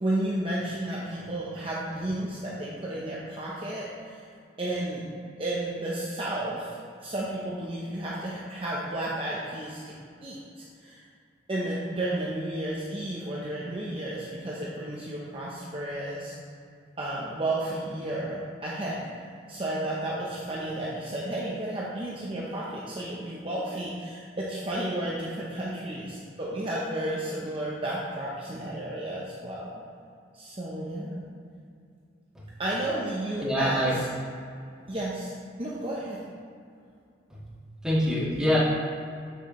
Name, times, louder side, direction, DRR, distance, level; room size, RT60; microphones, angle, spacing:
voice 1, 0.0-4.2 4.6-5.0 5.4-9.9 10.2-11.1 11.5-16.3 17.0-19.1 19.5-29.7 30.3-31.3 32.6-34.1 34.9-35.3 35.6-36.2, right 1 dB, 30° right, -6 dB, 0.8 m, -32 dB
voice 2, 33.4-34.0 37.3-37.4 37.8-38.6, equal, 5° right, -8 dB, 1.9 m, -25 dB
8.2 x 7.9 x 3.2 m, 2.4 s
head